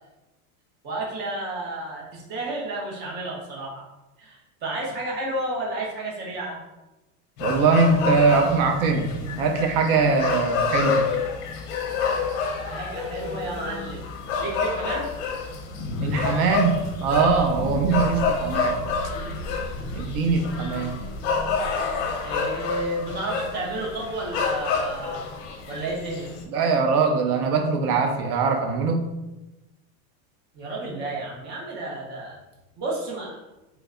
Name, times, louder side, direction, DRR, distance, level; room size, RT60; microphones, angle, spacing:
voice 1, 0.8-3.8 4.2-6.6 12.6-14.0 14.4-15.1 22.2-25.2 25.7-26.3 30.5-32.4 32.8-33.4, right 2 dB, 25° right, -3 dB, 0.6 m, -31 dB
sound 1, 7.4-26.4, left 4 dB, 55° left, 0.7 m, -28 dB
voice 2, 7.4-9.1 9.4-11.0 16.0-18.8 19.9-21.0 26.5-29.1, right 4 dB, 75° right, 3 dB, 0.6 m, -22 dB
3.2 x 2.1 x 3.6 m, 1.0 s
supercardioid pair, 160°, 45 cm